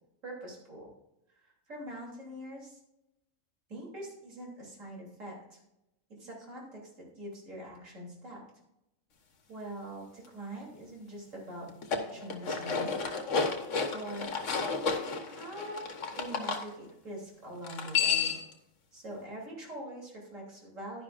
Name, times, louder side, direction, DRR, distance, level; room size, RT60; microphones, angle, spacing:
voice 1, 0.2-0.9 1.4-2.8 3.7-5.6 6.1-6.9 7.2-8.4 9.5-12.9 13.9-14.3 15.3-18.3 18.9-21.0, right 1 dB, 65° right, -2 dB, 3.5 m, -43 dB
sound 1, 11.7-16.6 17.6-18.5, left 5 dB, 60° left, 1.5 m, -31 dB
11.0 x 10.5 x 2.5 m, 0.88 s
omnidirectional pair, 1.4 m